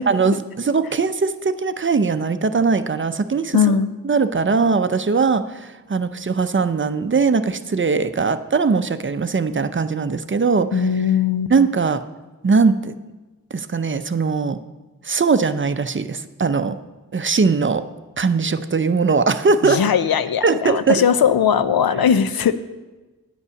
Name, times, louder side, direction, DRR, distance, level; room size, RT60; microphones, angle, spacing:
voice 1, 0.1-3.6 4.0-10.9 11.5-12.0 12.4-12.9 13.5-14.6 15.0-16.8 17.1-17.8 18.2-19.8 20.4-21.0, right 4 dB, 35° right, 11 dB, 0.5 m, -20 dB
voice 2, 3.5-3.9 10.7-11.5 19.6-22.6, left 7 dB, 85° left, 13 dB, 0.6 m, -19 dB
9.7 x 5.5 x 8.1 m, 1.2 s
wide cardioid pair, 65°, 35 cm